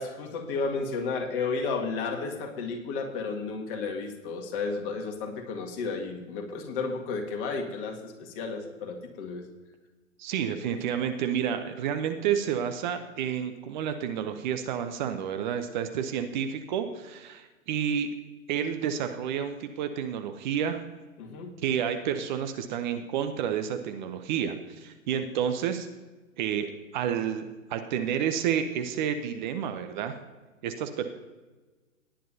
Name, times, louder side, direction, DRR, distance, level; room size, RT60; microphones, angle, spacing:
voice 1, 0.0-9.4 21.2-21.5, left 4 dB, 40° left, 2 dB, 2.1 m, -32 dB
voice 2, 10.2-18.1 18.5-20.8 21.6-25.9 26.4-30.1 30.6-31.1, right 8 dB, 35° right, 7 dB, 0.8 m, -30 dB
18.0 x 10.0 x 2.8 m, 1.2 s
figure-of-eight pair, 120°, 41 cm